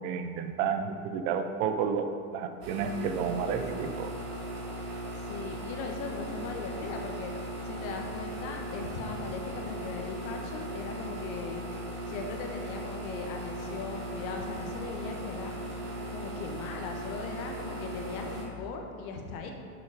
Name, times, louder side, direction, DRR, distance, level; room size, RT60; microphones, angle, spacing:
voice 1, 0.0-4.1, right 6 dB, 55° right, 7 dB, 0.9 m, -31 dB
sound 1, 2.6-18.5, right 1 dB, 80° right, 2.3 m, -38 dB
voice 2, 5.1-11.6 12.1-15.8 16.1-19.5, left 4 dB, 65° left, 3 dB, 1.4 m, -39 dB
7.3 x 6.3 x 5.0 m, 2.1 s
hypercardioid pair, 110°, 45 cm